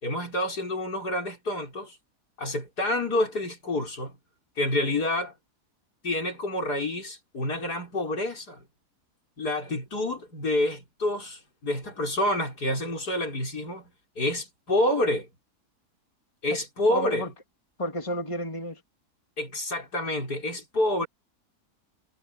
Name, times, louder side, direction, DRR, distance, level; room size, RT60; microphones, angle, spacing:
voice 1, 0.0-2.0 2.4-4.2 4.6-5.3 6.0-8.6 9.4-13.9 14.2-15.3 16.4-17.3 19.4-21.1, left 1 dB, 70° left, 6.4 m, -28 dB
voice 2, 16.9-17.3 17.8-18.8, left 1 dB, 20° left, 2.6 m, -31 dB
omnidirectional pair, 1.7 m